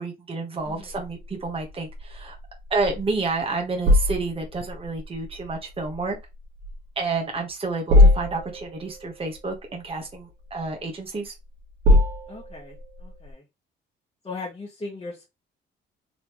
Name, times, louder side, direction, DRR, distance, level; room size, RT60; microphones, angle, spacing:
voice 1, 0.0-2.4 2.7-6.2 7.0-11.3, right 3 dB, 30° right, 1.3 m, -30 dB
voice 2, 0.6-1.0 12.3-13.4 14.2-15.2, left 3 dB, 25° left, 1.3 m, -38 dB
sound 1, 0.6-13.3, left 1 dB, 65° right, 1.6 m, -24 dB
3.9 x 3.4 x 3.0 m
cardioid pair, 90°, 20 cm